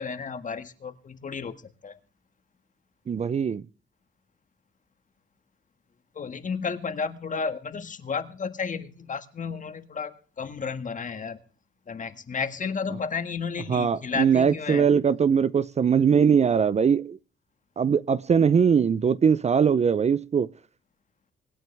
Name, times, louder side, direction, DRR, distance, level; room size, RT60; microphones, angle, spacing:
voice 1, 0.0-2.0 6.2-11.4 11.9-14.9, left 5 dB, 40° left, 1.7 m, -32 dB
voice 2, 3.1-3.6 13.7-17.2 17.8-20.5, right 7 dB, 35° right, 0.5 m, -21 dB
25.0 x 9.1 x 3.4 m
cardioid pair, 90°, 20 cm